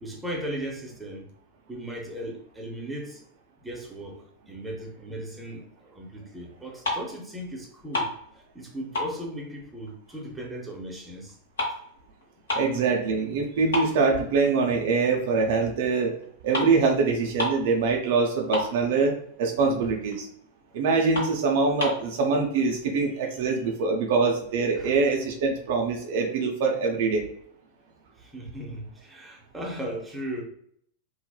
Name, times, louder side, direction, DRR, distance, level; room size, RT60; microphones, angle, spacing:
voice 1, 0.0-1.3 1.7-3.2 3.6-11.4 24.7-25.1 28.2-30.4, right 1 dB, 10° right, 0.6 m, -37 dB
sound 1, 6.6-7.3 7.6-8.7 8.9-10.5 10.8-12.8 13.2-13.3 13.7-14.8 15.2-15.4 16.2-16.3 16.5-16.8 17.0-17.1 17.3-17.7 18.0-18.1 18.3-19.2 19.6-19.7 20.1-20.2 20.6-20.7 21.1-22.1, left 2 dB, 65° left, 0.8 m, -31 dB
voice 2, 12.5-16.1 16.4-20.3 20.7-27.2, right 4 dB, 55° right, 0.4 m, -24 dB
3.2 x 2.0 x 2.2 m
figure-of-eight pair, 90°, 0 cm